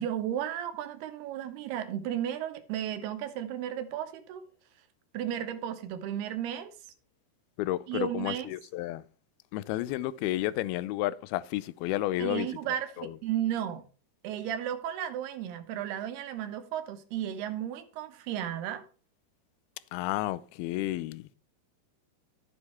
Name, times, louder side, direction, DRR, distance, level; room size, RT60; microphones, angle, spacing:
voice 1, 0.0-4.4 5.1-6.7 7.9-8.5 12.2-13.8 14.2-18.8, right 10 dB, 80° right, 3.1 m, -34 dB
voice 2, 7.6-9.0 9.5-12.5 13.0-13.2 19.9-21.3, left 15 dB, 80° left, 2.4 m, -31 dB
12.5 x 7.8 x 4.3 m
omnidirectional pair, 4.6 m